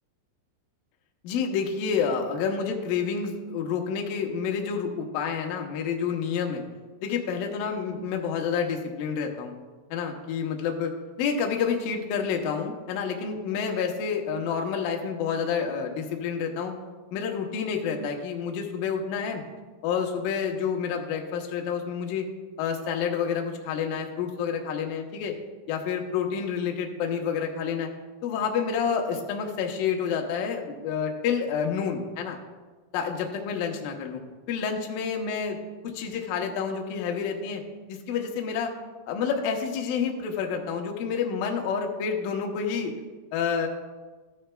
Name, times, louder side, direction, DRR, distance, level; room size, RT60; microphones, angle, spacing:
voice 1, 1.2-6.6 7.0-9.5 9.9-16.7 17.1-19.4 19.8-22.3 22.6-25.3 25.7-27.9 28.2-32.4 32.9-34.2 34.5-35.6 36.0-37.6 37.9-38.7 39.1-42.9 43.3-43.7, left 6 dB, 85° left, 2 dB, 2.0 m, -29 dB
13.5 x 9.8 x 2.3 m, 1.3 s
omnidirectional pair, 5.3 m